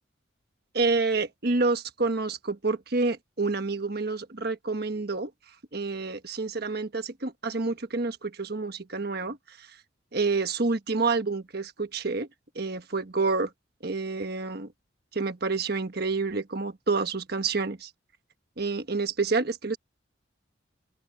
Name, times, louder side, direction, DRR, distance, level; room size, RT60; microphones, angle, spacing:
voice 1, 0.7-5.3 5.7-9.7 10.1-12.3 12.5-13.5 13.8-14.7 15.1-17.9 18.6-19.8, right 3 dB, 50° right, 1.3 m, -28 dB
open air
head